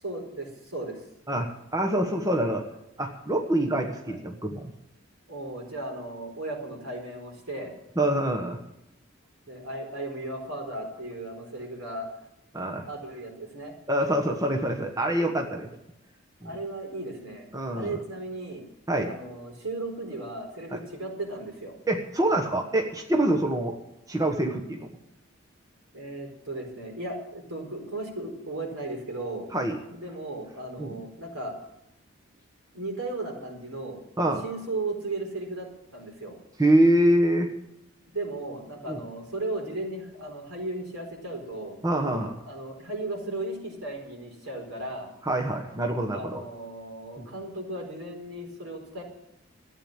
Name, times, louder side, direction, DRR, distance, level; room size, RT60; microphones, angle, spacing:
voice 1, 0.0-1.0 4.1-4.2 5.3-7.7 9.5-12.1 12.9-13.7 16.4-17.5 17.7-18.6 19.0-21.7 23.3-23.4 25.9-29.5 29.9-31.5 32.7-34.0 34.4-35.7 35.9-36.4 38.1-41.8 42.4-45.1 46.1-49.0, right 2 dB, 90° right, 1 dB, 4.4 m, -36 dB
voice 2, 1.3-2.6 3.0-4.7 8.0-8.6 12.5-12.9 13.9-15.7 16.4-16.5 17.5-18.0 18.9-19.2 21.9-23.7 24.1-24.9 29.5-29.8 30.8-31.0 34.2-34.4 36.6-37.5 38.9-39.0 41.8-42.4 45.2-46.4 47.2-47.3, right 1 dB, 15° right, 3 dB, 1.3 m, -25 dB
14.0 x 9.1 x 8.9 m, 0.84 s
head